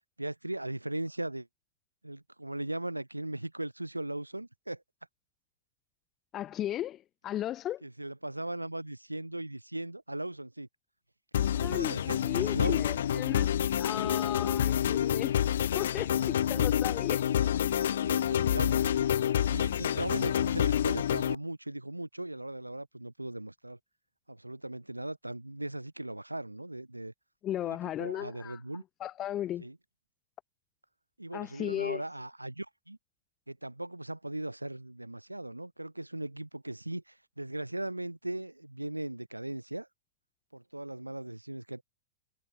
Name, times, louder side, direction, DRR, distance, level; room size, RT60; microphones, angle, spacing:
voice 1, 0.2-1.5 2.0-4.8 7.8-10.7 11.6-13.6 13.8-14.1 17.9-19.1 19.4-23.8 24.3-27.1 27.6-28.8 29.6-29.8 31.2-33.0 33.5-39.9 40.5-41.8, right 1 dB, 85° right, 2.8 m, -38 dB
voice 2, 6.3-7.8 11.4-15.4 15.7-17.3 17.6-17.8 27.4-28.6 29.0-29.7 31.3-32.0, left 12 dB, 30° left, 1.6 m, -36 dB
sound 1, 11.3-21.4, left 10 dB, 60° left, 0.5 m, -28 dB
figure-of-eight pair, 95°, 0 cm